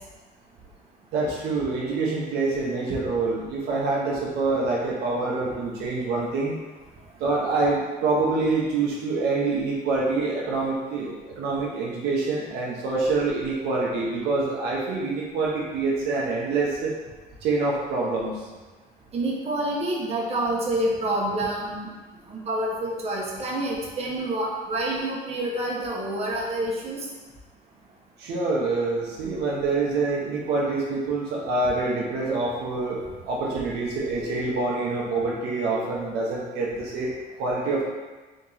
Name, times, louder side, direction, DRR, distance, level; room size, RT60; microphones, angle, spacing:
voice 1, 1.1-6.6 7.2-16.9 17.4-18.5 28.2-33.0 33.2-37.1 37.4-37.8, right 3 dB, 75° right, -3 dB, 0.8 m, -26 dB
voice 2, 19.1-21.9 22.3-27.0, right 1 dB, 40° right, -4 dB, 1.0 m, -27 dB
3.7 x 2.8 x 3.9 m, 1.3 s
cardioid pair, 110°, 17 cm